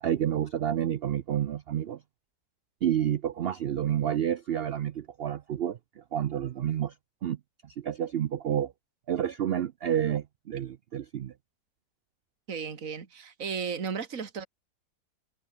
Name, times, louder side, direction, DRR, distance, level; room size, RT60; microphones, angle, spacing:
voice 1, 0.0-2.0 2.8-6.9 7.2-7.4 7.6-8.7 9.1-11.3, right 10 dB, 80° right, 0.5 m, -29 dB
voice 2, 12.5-14.5, right 6 dB, 55° right, 2.4 m, -34 dB
omnidirectional pair, 1.7 m